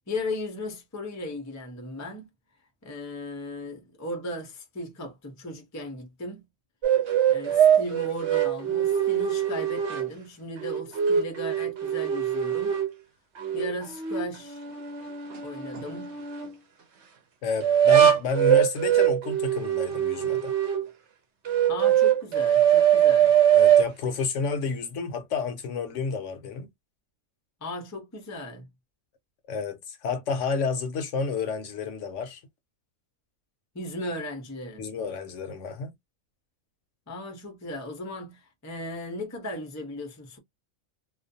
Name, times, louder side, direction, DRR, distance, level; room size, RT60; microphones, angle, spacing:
voice 1, 0.1-2.3 2.8-6.4 7.3-12.8 13.5-14.6 15.4-16.2 21.7-23.3 27.6-28.7 33.7-34.8 37.1-40.4, left 1 dB, 25° left, 0.4 m, -36 dB
sound 1, 6.8-10.1 10.6-12.9 13.4-16.5 17.6-20.9 21.5-23.9, right 10 dB, 60° right, 0.9 m, -22 dB
voice 2, 17.4-20.5 23.5-26.7 29.5-32.4 34.8-35.9, left 5 dB, 70° left, 0.9 m, -30 dB
2.4 x 2.2 x 2.6 m
omnidirectional pair, 1.4 m